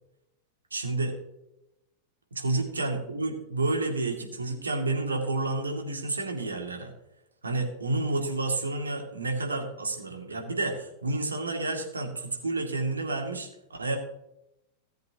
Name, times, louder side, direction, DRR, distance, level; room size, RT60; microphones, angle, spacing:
voice 1, 0.7-1.1 2.3-6.9 7.4-14.0, right 2 dB, 75° right, 2 dB, 2.3 m, -30 dB
17.5 x 7.8 x 2.9 m, 0.84 s
figure-of-eight pair, 90°, 0 cm